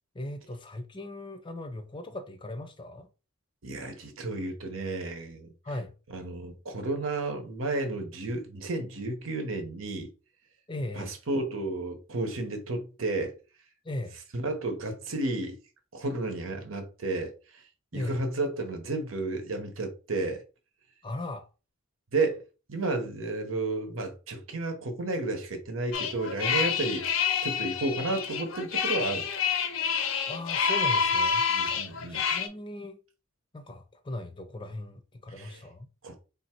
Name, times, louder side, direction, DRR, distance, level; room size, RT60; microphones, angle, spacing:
voice 1, 0.1-3.1 5.6-5.9 10.7-11.1 13.8-14.2 17.9-18.2 21.0-21.5 30.3-31.4 32.1-33.0 33.5-35.9, left 1 dB, 25° left, 0.5 m, -38 dB
voice 2, 3.6-5.5 6.1-10.1 11.0-13.3 14.3-15.6 15.9-17.6 17.9-20.4 22.1-22.4 22.7-29.3 31.5-32.2 35.4-35.6 36.0-36.2, right 2 dB, 80° right, 1.0 m, -32 dB
sound 1, 25.9-32.5, left 6 dB, 85° left, 0.7 m, -28 dB
3.5 x 2.7 x 4.4 m
head